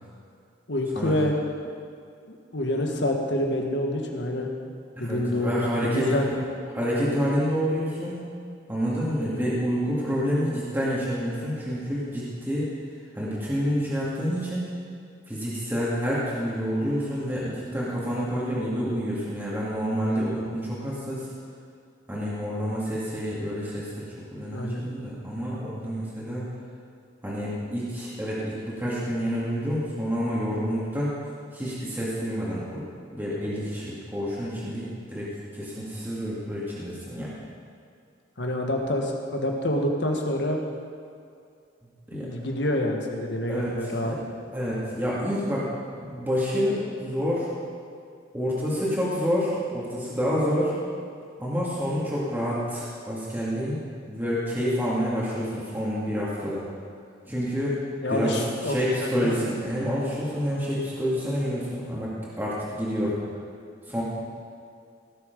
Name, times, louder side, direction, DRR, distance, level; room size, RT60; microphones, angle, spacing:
voice 1, 0.7-1.3 2.3-4.7 5.0-6.4 24.5-24.8 38.4-40.6 42.1-44.1 58.0-59.4, left 1 dB, 80° left, 2 dB, 1.5 m, -27 dB
voice 2, 5.0-6.2 6.7-8.2 8.7-12.7 13.1-14.8 15.3-21.3 22.1-26.5 27.2-31.1 31.5-32.9 33.1-37.3 42.1-42.3 43.5-44.2 44.5-45.7 46.0-47.5 48.3-50.7 51.4-53.8 54.0-56.6 57.3-57.8 58.1-58.4 58.6-63.2 63.9-64.0, equal, 10° right, -8 dB, 2.1 m, -28 dB
17.0 x 7.0 x 5.3 m, 2.4 s
head